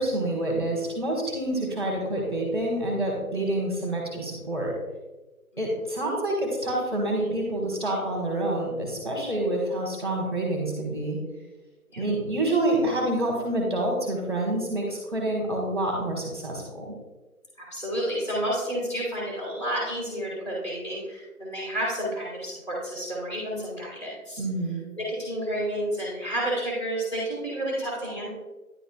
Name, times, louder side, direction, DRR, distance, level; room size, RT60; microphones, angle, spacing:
voice 1, 0.0-4.7 5.6-11.2 12.0-16.9 24.4-24.8, right 1 dB, 15° right, -2 dB, 1.2 m, -27 dB
voice 2, 17.6-24.4 25.0-28.3, right 1 dB, 20° left, -6 dB, 1.7 m, -30 dB
10.5 x 3.9 x 2.3 m, 1.1 s
figure-of-eight pair, 165°, 44 cm